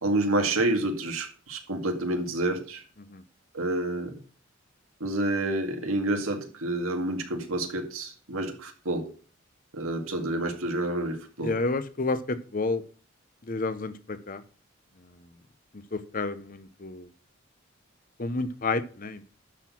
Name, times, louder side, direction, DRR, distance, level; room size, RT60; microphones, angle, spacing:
voice 1, 0.0-2.8 3.5-4.1 5.0-9.1 9.7-11.5, right 1 dB, 90° right, 4 dB, 2.1 m, -28 dB
voice 2, 11.4-12.8 13.4-14.4 15.0-15.2 15.7-17.1 18.2-19.3, left 3 dB, 40° left, 12 dB, 0.8 m, -31 dB
12.0 x 4.5 x 5.9 m, 0.40 s
head